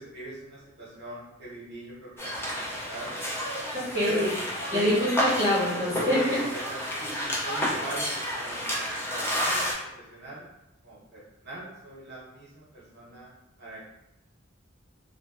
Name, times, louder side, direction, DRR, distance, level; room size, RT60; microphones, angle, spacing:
voice 1, 0.0-3.2 4.0-4.3 4.7-5.0 6.1-9.6 10.0-10.5 10.8-13.3 13.6-13.8, right 2 dB, 60° right, -7 dB, 0.8 m, -40 dB
sound 1, 2.2-9.7, equal, 15° left, 0.4 m, -31 dB
voice 2, 3.9-4.3 4.7-6.4, left 1 dB, 40° left, -10 dB, 1.5 m, -25 dB
2.5 x 2.2 x 2.4 m, 0.91 s
head